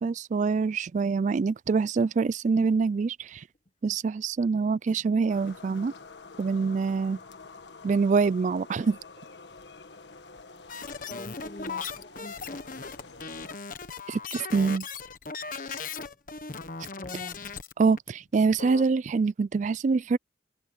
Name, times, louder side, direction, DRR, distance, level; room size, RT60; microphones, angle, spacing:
voice 1, 0.0-3.4 3.8-5.9 6.4-7.2 7.8-9.0 14.1-14.9 17.8-20.2, right 4 dB, 45° right, 0.3 m, -25 dB
sound 1, 5.3-13.6, left 4 dB, 75° left, 1.5 m, -48 dB
sound 2, 10.7-17.7 18.0-18.1 18.3-18.9, left 5 dB, 50° left, 1.3 m, -38 dB
voice 2, 11.1-13.0 16.9-17.4, left 2 dB, 35° left, 1.0 m, -44 dB
open air
head